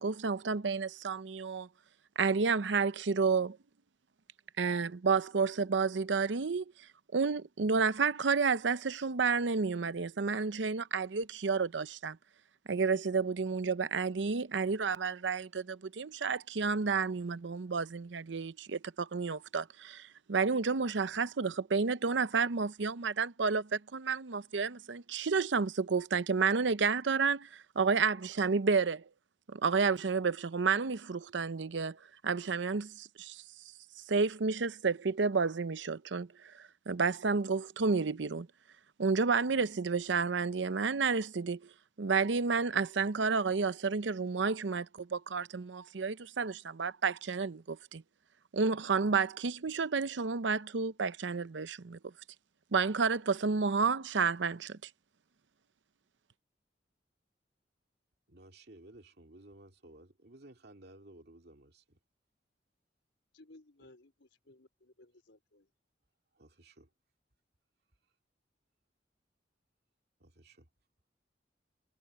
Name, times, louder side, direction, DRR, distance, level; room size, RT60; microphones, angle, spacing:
voice 1, 0.0-1.7 2.2-3.6 4.6-6.6 7.1-12.2 12.7-29.0 29.5-32.0 32.2-33.4 34.1-38.5 39.0-41.6 42.0-48.0 48.5-52.0 52.7-54.9, right 5 dB, 80° right, 0.7 m, -31 dB
voice 2, 58.3-62.0 66.3-66.9 70.2-70.7, right 1 dB, 60° right, 2.4 m, -56 dB
voice 3, 63.3-65.7, left 2 dB, 75° left, 4.1 m, -59 dB
head